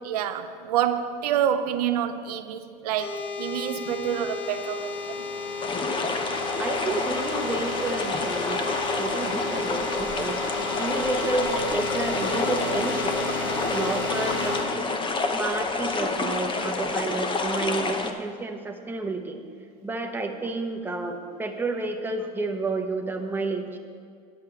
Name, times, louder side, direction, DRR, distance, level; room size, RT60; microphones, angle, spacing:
voice 1, 0.0-5.2, right 9 dB, 90° right, 0.6 m, -27 dB
sound 1, 3.0-14.6, left 3 dB, 70° left, 1.9 m, -32 dB
sound 2, 5.6-18.1, left 3 dB, 25° left, 0.8 m, -29 dB
voice 2, 6.6-8.6 9.0-10.4 10.8-13.2 13.7-14.6 15.3-19.5 19.8-23.8, right 3 dB, 10° right, 0.9 m, -30 dB
10.5 x 5.6 x 6.9 m
supercardioid pair, 105°, 19 cm